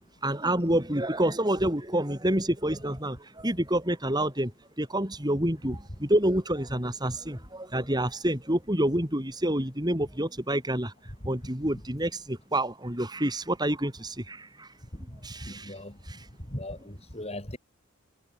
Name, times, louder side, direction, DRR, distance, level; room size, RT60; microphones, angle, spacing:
voice 1, 0.2-4.5 4.8-10.9 11.2-14.7 15.2-15.7, right 1 dB, 20° right, 6.4 m, -28 dB
voice 2, 15.1-16.0 16.5-17.6, left 1 dB, 30° left, 6.7 m, -39 dB
head